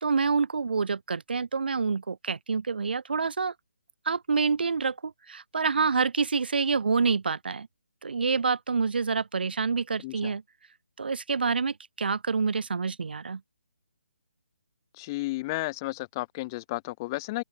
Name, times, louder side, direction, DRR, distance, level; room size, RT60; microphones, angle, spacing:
voice 1, 0.0-3.5 4.0-7.7 8.0-10.4 11.0-13.4, right 5 dB, 60° right, 1.3 m, -27 dB
voice 2, 10.0-10.3 15.0-17.4, left 21 dB, 20° left, 0.8 m, -33 dB
open air
figure-of-eight pair, 150°, 6 cm